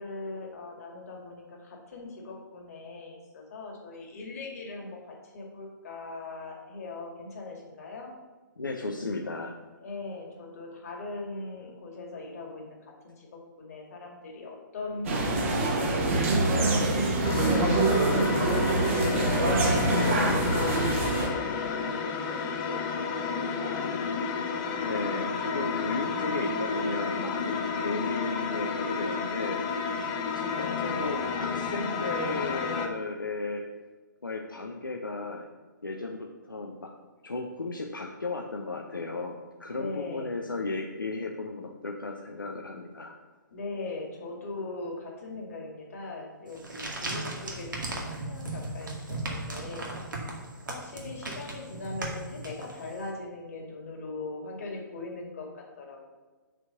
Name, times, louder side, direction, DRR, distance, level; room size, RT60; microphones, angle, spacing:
voice 1, 0.0-8.1 9.8-12.8 13.0-13.3 13.6-19.0 19.6-23.0 23.3-23.9 30.7-31.1 39.7-40.4 43.5-49.9 50.7-56.1, left 3 dB, 45° left, 0 dB, 2.2 m, -40 dB
voice 2, 8.6-9.5 24.8-33.6 34.2-35.5 35.8-36.9 37.2-43.1, left 3 dB, 75° left, 1 dB, 0.8 m, -35 dB
sound 1, 15.0-21.3, right 2 dB, 40° right, 1.5 m, -24 dB
sound 2, 17.2-32.9, left 5 dB, 25° left, 0.8 m, -31 dB
sound 3, 46.5-53.0, right 2 dB, 70° right, 1.9 m, -37 dB
6.2 x 4.6 x 6.5 m, 1.3 s
figure-of-eight pair, 130°, 11 cm